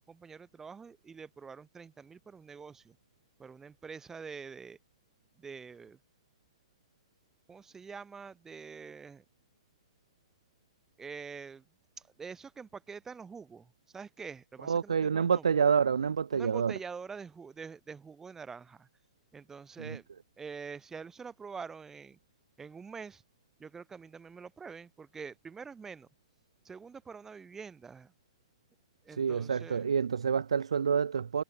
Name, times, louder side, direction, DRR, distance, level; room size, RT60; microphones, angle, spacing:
voice 1, 0.0-3.0 3.4-4.8 5.4-6.0 7.5-9.2 11.0-11.7 12.2-15.4 16.3-18.9 19.3-20.1 20.4-22.2 22.6-23.2 23.6-26.1 26.6-28.1 29.0-29.9, right 5 dB, 15° right, 3.2 m, -46 dB
voice 2, 14.6-16.7 19.8-20.0 29.1-31.4, right 6 dB, 85° right, 1.7 m, -28 dB
hypercardioid pair, 120°, 3 cm